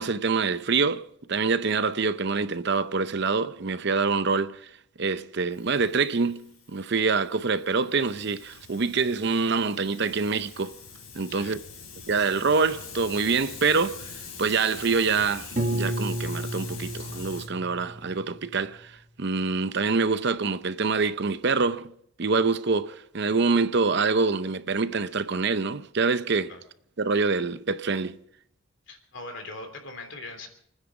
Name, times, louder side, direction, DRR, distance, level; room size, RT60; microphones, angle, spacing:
voice 1, 0.0-4.7 5.0-10.8 11.1-11.6 12.1-14.1 14.4-21.9 22.2-26.5 27.0-28.2, right 4 dB, 55° right, 0.7 m, -25 dB
Hiss, 5.5-17.5, left 5 dB, 80° left, 4.2 m, -44 dB
voice 2, 11.3-11.6 26.5-26.6 28.9-30.5, left 2 dB, 60° left, 3.3 m, -40 dB
Piano, 15.6-18.5, right 1 dB, 35° right, 1.6 m, -31 dB
28.0 x 9.9 x 5.2 m
head